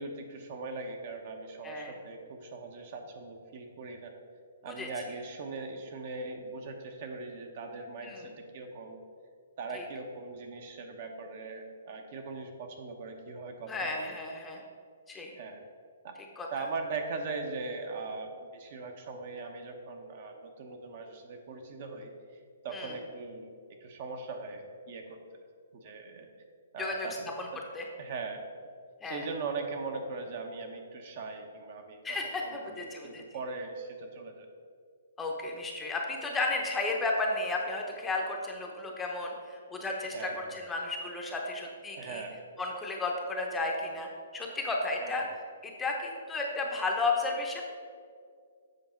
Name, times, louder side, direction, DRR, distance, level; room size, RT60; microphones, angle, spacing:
voice 1, 0.0-4.1 4.6-9.0 9.6-14.2 15.4-15.6 16.0-16.2 16.5-22.1 22.6-23.5 23.8-25.2 25.7-26.3 26.7-27.6 28.0-28.4 29.0-32.0 32.4-34.5 40.1-40.6 42.0-42.4 45.0-45.3, right 3 dB, 45° right, 4 dB, 0.9 m, -40 dB
voice 2, 13.7-14.6 15.1-15.3 16.4-16.5 22.7-22.9 26.8-27.1 27.4-27.5 27.7-27.9 29.0-29.3 32.0-33.2 35.2-42.2 42.6-45.3 45.6-47.6, left 3 dB, 10° left, 0 dB, 0.7 m, -33 dB
8.0 x 5.0 x 4.4 m, 2.1 s
hypercardioid pair, 155°, 0 cm